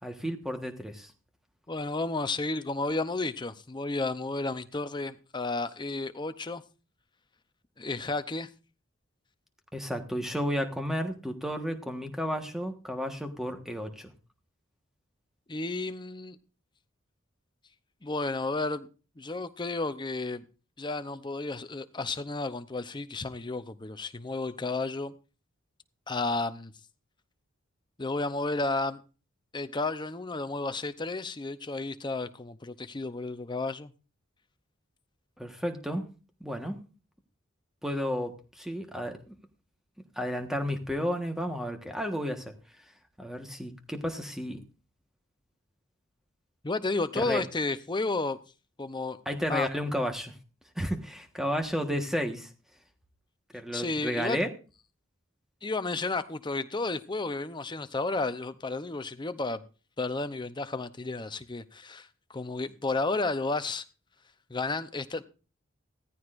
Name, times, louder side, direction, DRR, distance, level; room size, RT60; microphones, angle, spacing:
voice 1, 0.0-1.1 9.7-14.1 35.4-36.1 36.4-36.8 37.8-39.3 40.2-42.5 43.2-44.6 47.2-47.4 49.2-50.3 50.7-52.5 53.5-54.5, equal, ahead, 1.4 m, -32 dB
voice 2, 1.7-6.6 7.8-8.5 15.5-16.4 18.0-18.9 19.2-20.4 20.8-25.1 26.1-26.7 28.0-29.0 29.5-33.9 46.6-48.4 48.8-49.2 49.5-49.7 53.7-54.4 55.6-59.6 60.0-63.8 64.5-65.2, left 3 dB, 20° left, 0.7 m, -32 dB
16.5 x 14.0 x 2.6 m
head